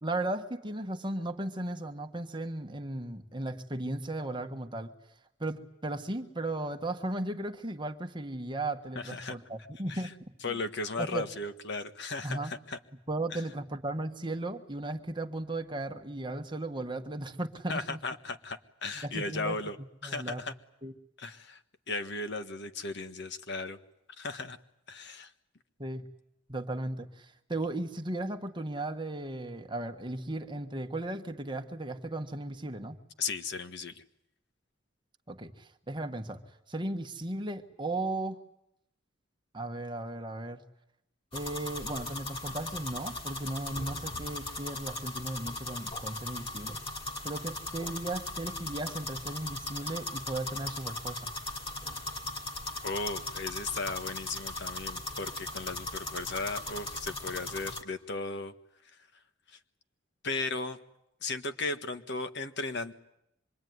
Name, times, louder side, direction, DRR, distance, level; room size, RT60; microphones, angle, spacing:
voice 1, 0.0-4.9 5.4-10.1 10.5-10.6 11.0-11.3 12.2-12.5 13.1-18.0 19.0-19.6 20.0-20.4 20.8-20.9 25.8-26.1 26.5-33.0 35.3-36.4 36.7-38.4 39.5-40.6 41.3-46.8 47.2-51.3, right 2 dB, 25° right, 5 dB, 1.5 m, -36 dB
voice 2, 9.0-9.4 9.9-10.0 10.4-12.8 13.3-13.4 17.7-19.8 20.0-20.5 21.2-21.6 21.9-23.8 24.2-24.6 24.9-25.3 33.2-34.0 52.8-58.5 59.5-59.6 60.2-60.8 61.2-62.9, left 3 dB, 60° left, 8 dB, 1.6 m, -36 dB
sound 1, 41.3-57.8, left 2 dB, 30° left, 2.8 m, -38 dB
26.0 x 23.5 x 9.5 m, 0.80 s
head